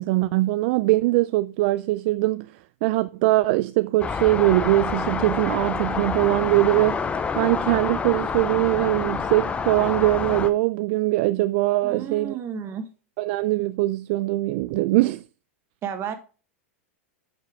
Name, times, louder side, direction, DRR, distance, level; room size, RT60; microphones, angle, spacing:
voice 1, 0.0-2.5 2.8-7.0 7.4-12.3 13.2-15.2, right 18 dB, 55° right, 0.4 m, -22 dB
sound 1, 4.0-10.5, left 5 dB, 15° left, 0.6 m, -28 dB
voice 2, 11.8-12.9 15.8-16.1, right 7 dB, 35° right, 1.4 m, -32 dB
8.2 x 5.9 x 3.5 m
hypercardioid pair, 115°, 7 cm